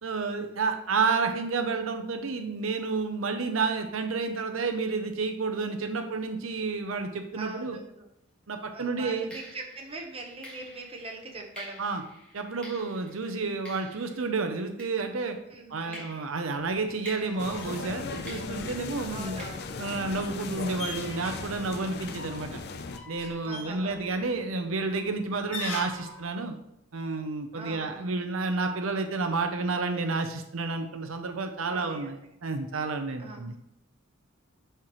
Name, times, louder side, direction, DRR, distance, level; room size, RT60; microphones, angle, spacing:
voice 1, 0.0-7.8 8.5-9.3 11.8-12.0 12.3-15.4 15.7-19.4 19.8-22.6 23.1-26.5 26.9-33.6, right 4 dB, 80° right, 6 dB, 0.7 m, -30 dB
voice 2, 7.3-8.0 8.7-11.9 15.5-16.1 19.1-19.6 23.4-24.0 27.5-28.2 31.7-32.1 33.2-33.5, right 2 dB, 30° right, 2 dB, 1.1 m, -42 dB
sound 1, 8.1-8.4 9.3-15.5 15.9-20.6, left 1 dB, 5° left, 1.9 m, -50 dB
sound 2, 16.5-26.3, left 3 dB, 90° left, 1.6 m, -44 dB
sound 3, 17.4-23.0, left 4 dB, 55° left, 0.5 m, -37 dB
10.5 x 4.5 x 3.1 m, 0.81 s
head